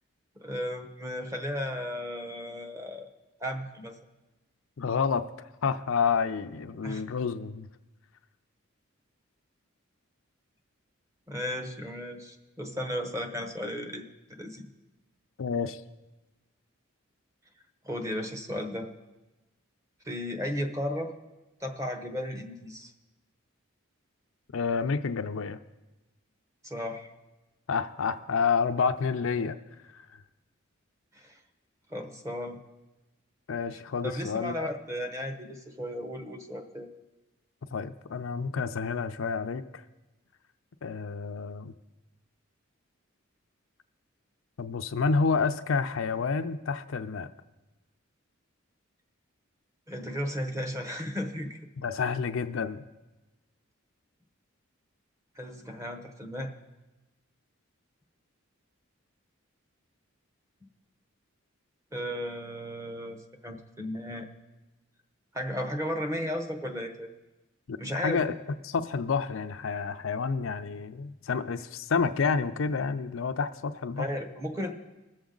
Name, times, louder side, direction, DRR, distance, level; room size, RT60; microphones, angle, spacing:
voice 1, 0.4-3.1 3.4-4.0 6.8-7.0 11.3-14.7 17.8-18.9 20.0-21.1 21.6-22.9 26.6-27.1 31.1-31.4 31.9-32.6 34.0-36.9 49.9-51.6 55.4-56.5 61.9-64.3 65.3-67.1 67.8-68.3 74.0-74.7, equal, 15° right, 6 dB, 1.0 m, -35 dB
voice 2, 4.8-5.3 5.6-7.7 15.4-15.8 24.5-25.6 27.7-29.6 29.9-30.0 33.5-34.7 37.7-39.8 40.8-41.7 44.6-47.3 51.8-52.9 67.7-67.8 68.0-68.3 68.6-74.1, left 5 dB, 70° left, 9 dB, 0.5 m, -29 dB
20.5 x 7.1 x 3.9 m, 1.1 s
head